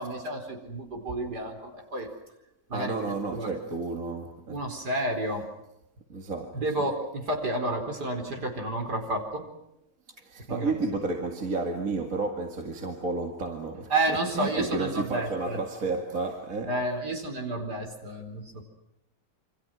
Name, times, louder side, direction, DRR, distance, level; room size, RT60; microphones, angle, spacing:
voice 1, 0.0-2.1 2.7-3.0 3.3-3.5 4.5-5.5 6.5-9.4 10.5-10.7 13.9-15.6 16.7-18.6, right 1 dB, 70° right, 5.1 m, -30 dB
voice 2, 2.7-4.6 6.1-6.9 10.2-16.8, right 3 dB, 55° right, 2.5 m, -32 dB
28.0 x 26.0 x 6.2 m
omnidirectional pair, 1.8 m